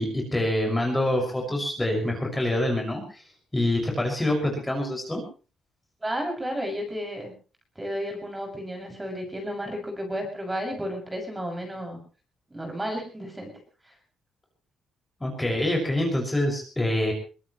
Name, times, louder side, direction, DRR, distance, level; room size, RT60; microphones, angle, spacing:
voice 1, 0.0-3.2 3.5-5.2 15.2-17.1, left 1 dB, 10° left, 1 dB, 6.3 m, -26 dB
voice 2, 6.0-7.3 7.7-12.0 12.5-13.5 13.8-13.9, equal, 15° right, 2 dB, 7.0 m, -32 dB
23.5 x 18.5 x 3.2 m, 0.37 s
cardioid pair, 90°, 0 cm